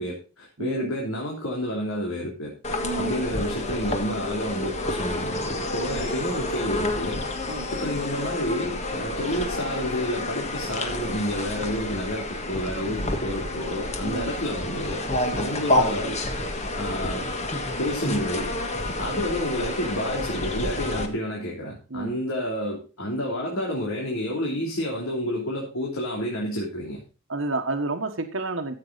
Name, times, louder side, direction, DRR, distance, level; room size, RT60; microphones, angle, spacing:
voice 1, 0.0-2.5 3.0-15.0 15.3-17.3 17.8-18.5 19.0-27.0, equal, 80° left, -3 dB, 3.2 m, -30 dB
voice 2, 0.6-0.9 2.8-3.2 5.9-6.1 7.5-7.7 14.0-14.3 21.9-22.2 27.3-28.7, right 2 dB, 65° right, 5 dB, 1.4 m, -30 dB
sound 1, 2.6-21.1, left 1 dB, 30° left, 1.6 m, -29 dB
14.5 x 7.9 x 4.1 m, 0.33 s
head